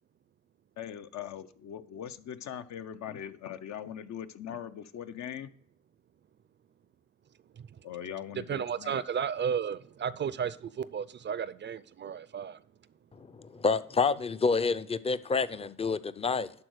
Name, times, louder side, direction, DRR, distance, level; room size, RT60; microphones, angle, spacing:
voice 1, 0.8-5.5 7.8-9.0 14.1-14.2, left 9 dB, 65° left, 0.6 m, -41 dB
voice 2, 7.5-7.9 8.4-12.6, right 7 dB, 40° right, 0.4 m, -33 dB
voice 3, 13.2-16.5, left 4 dB, 20° left, 0.4 m, -28 dB
11.5 x 3.9 x 6.3 m
cardioid pair, 90°, 30 cm